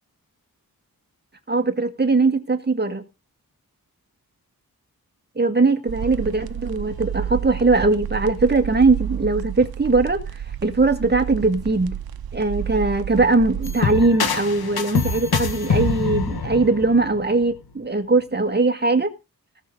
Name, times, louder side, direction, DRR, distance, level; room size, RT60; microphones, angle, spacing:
voice 1, 1.5-3.0 5.4-12.0 12.3-19.1, right 3 dB, 30° right, 1.9 m, -20 dB
sound 1, 5.9-13.8, right 9 dB, 85° right, 0.7 m, -31 dB
sound 2, 13.6-17.6, left 5 dB, 85° left, 1.6 m, -25 dB
18.5 x 6.8 x 3.8 m
wide cardioid pair, 85°, 36 cm